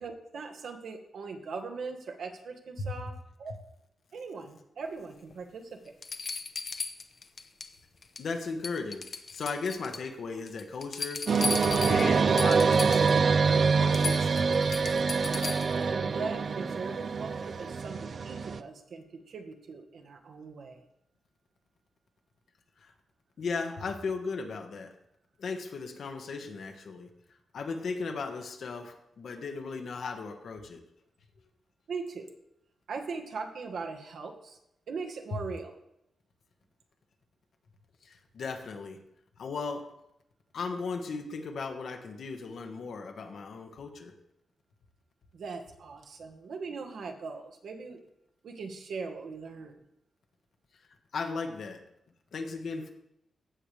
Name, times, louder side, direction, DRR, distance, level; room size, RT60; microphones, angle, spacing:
voice 1, 0.0-3.6 4.1-5.9 15.8-20.8 31.9-32.3 32.9-34.6 34.9-35.7 45.3-48.0 48.4-49.8, right 4 dB, 75° right, 4 dB, 1.4 m, -40 dB
sound 1, 5.3-5.4 6.0-7.7 8.0-8.4 8.6-10.1 10.5-13.2 13.5-13.6 13.9-15.8 17.5-17.6, left 4 dB, 50° left, 0.7 m, -37 dB
voice 2, 8.2-9.0 9.3-11.2 11.7-14.4 22.8-22.9 23.4-24.9 25.4-27.1 27.5-30.8 38.0-39.0 39.4-39.8 40.5-44.1 51.1-51.8 52.3-52.9, left 4 dB, 70° left, 4 dB, 1.3 m, -36 dB
sound 2, 11.3-18.6, right 5 dB, 55° right, 0.4 m, -25 dB
15.0 x 6.9 x 3.3 m, 0.80 s
wide cardioid pair, 115°, 0 cm